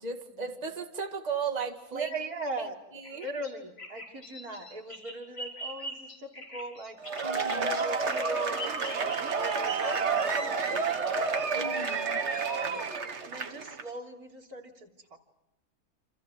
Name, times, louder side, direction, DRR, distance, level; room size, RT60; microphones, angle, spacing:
voice 1, 0.0-2.1 2.6-2.7 2.9-3.3 7.2-7.9 11.5-12.2, right 5 dB, 25° right, 4 dB, 2.1 m, -36 dB
voice 2, 1.9-2.7 3.1-7.0 7.5-12.8 13.2-15.2, right 2 dB, 75° right, 2 dB, 3.7 m, -40 dB
Bird vocalization bird call bird song, 3.0-9.6, left 1 dB, 80° left, 6.3 m, -43 dB
Cheering / Applause / Crowd, 7.0-13.8, right 5 dB, 50° right, 1.7 m, -30 dB
29.0 x 28.0 x 6.1 m, 0.88 s
omnidirectional pair, 1.6 m